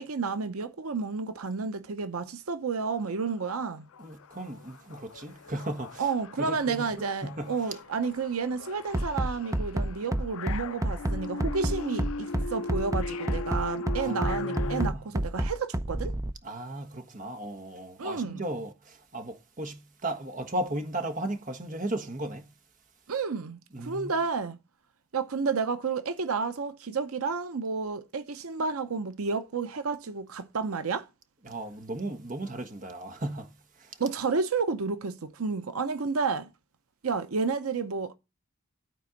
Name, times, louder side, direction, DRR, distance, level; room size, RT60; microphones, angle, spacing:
voice 1, 0.0-3.9 6.0-16.2 18.0-18.4 23.1-24.6 25.1-31.1 34.0-36.5 37.0-38.2, right 4 dB, 85° right, 0.7 m, -31 dB
sound 1, 3.0-3.1 3.4-14.9, left 3 dB, 70° left, 0.5 m, -39 dB
voice 2, 4.0-6.0 6.4-6.8 7.2-7.5 14.0-15.0 16.4-22.5 23.7-24.1 31.4-33.5 33.8-34.0, right 1 dB, 35° right, 1.3 m, -36 dB
Bass drum, 8.9-16.3, right 1 dB, 15° right, 0.5 m, -28 dB
12.5 x 4.3 x 5.1 m
head